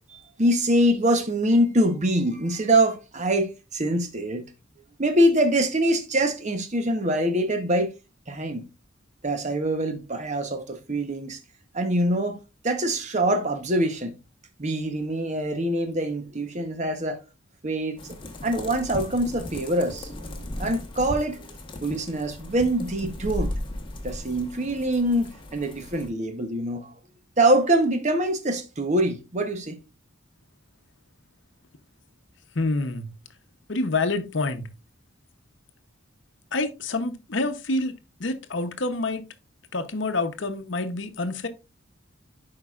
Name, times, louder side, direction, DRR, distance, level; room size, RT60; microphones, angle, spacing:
voice 1, 0.0-4.4 5.0-7.9 8.3-8.6 9.2-11.4 11.7-12.4 12.6-14.2 14.6-17.2 17.6-23.5 24.0-26.9 27.4-29.8, right 1 dB, 35° right, 0.9 m, -24 dB
sound 1, 18.0-26.1, left 1 dB, 25° left, 1.2 m, -36 dB
voice 2, 32.5-33.1 33.7-34.7 36.5-37.9 38.2-39.2 39.7-41.5, left 2 dB, 60° left, 0.8 m, -27 dB
11.0 x 4.8 x 2.4 m
head